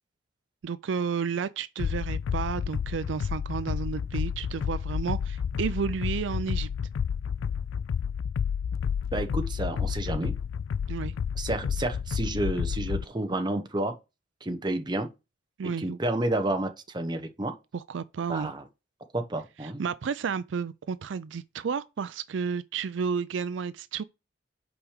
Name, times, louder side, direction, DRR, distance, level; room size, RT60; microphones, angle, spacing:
voice 1, 0.6-6.7 10.9-11.1 15.6-16.0 17.7-18.5 19.6-24.0, right 6 dB, 75° right, 0.4 m, -32 dB
sound 1, 1.8-13.0, left 7 dB, 90° left, 0.3 m, -30 dB
voice 2, 9.1-10.4 11.4-14.0 14.4-15.1 15.8-17.5 18.3-18.6 19.1-19.8, right 1 dB, 25° right, 1.0 m, -30 dB
6.1 x 4.9 x 6.5 m
head